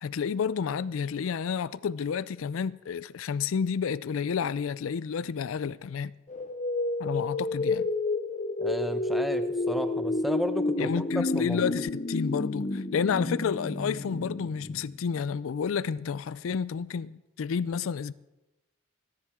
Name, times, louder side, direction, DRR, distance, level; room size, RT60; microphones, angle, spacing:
voice 1, 0.0-6.1 7.0-7.9 10.8-18.1, left 6 dB, 75° left, 0.4 m, -30 dB
sound 1, 6.3-15.2, left 2 dB, 35° left, 0.7 m, -30 dB
voice 2, 8.6-11.7, equal, ahead, 0.7 m, -33 dB
26.5 x 10.5 x 3.6 m
head